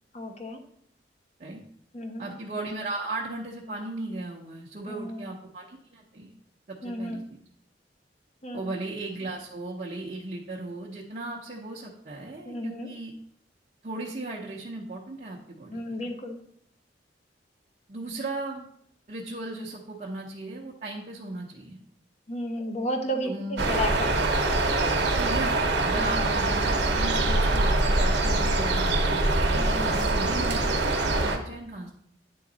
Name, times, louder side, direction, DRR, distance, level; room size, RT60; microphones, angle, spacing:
voice 1, 0.1-0.6 1.9-2.3 4.9-5.3 6.8-7.3 8.4-8.7 12.4-12.9 15.7-16.4 22.3-24.4 25.9-26.4 29.5-30.1, equal, 40° left, 4 dB, 0.8 m, -33 dB
voice 2, 2.2-6.3 6.7-7.2 8.5-13.1 13.8-16.1 17.9-18.7 19.1-21.8 23.2-23.7 25.1-31.9, right 2 dB, 45° right, -3 dB, 0.7 m, -36 dB
sound 1, 23.6-31.4, right 2 dB, 70° right, 0.9 m, -24 dB
9.4 x 3.8 x 3.9 m, 0.69 s
head